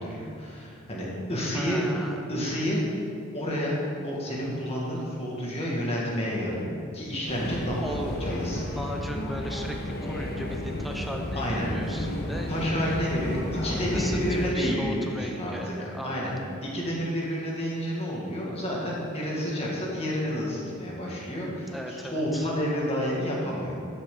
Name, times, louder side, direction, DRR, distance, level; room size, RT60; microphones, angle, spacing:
voice 1, 0.0-1.8 2.3-2.8 3.3-3.8 4.0-8.7 11.4-11.7 12.5-16.3 16.7-23.7, equal, 25° left, -4 dB, 2.0 m, -30 dB
voice 2, 1.5-2.3 7.8-8.3 8.7-12.5 13.9-16.3 21.7-22.5, equal, ahead, 1 dB, 0.8 m, -37 dB
sound 1, 7.3-14.5, left 1 dB, 45° left, 1.3 m, -32 dB
12.0 x 8.3 x 3.9 m, 2.4 s
head